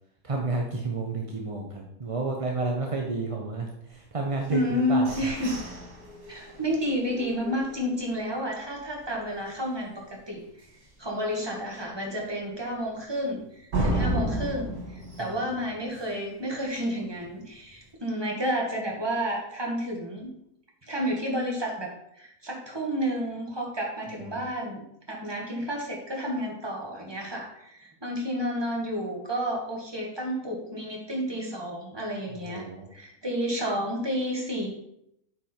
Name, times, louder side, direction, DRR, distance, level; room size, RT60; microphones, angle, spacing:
voice 1, 0.2-5.3 15.2-15.5 24.2-24.4 32.4-32.9, right 3 dB, 35° right, 1 dB, 0.6 m, -31 dB
sound 1, 4.4-8.3 8.8-8.9 9.3-9.7 10.0-10.1 10.6-10.7 13.7-16.4, right 1 dB, 85° right, 2.6 m, -33 dB
voice 2, 4.5-5.6 6.3-10.4 11.0-20.3 20.8-32.7 32.9-34.7, equal, 15° right, -2 dB, 1.6 m, -31 dB
8.4 x 4.8 x 4.4 m, 0.78 s
omnidirectional pair, 1.6 m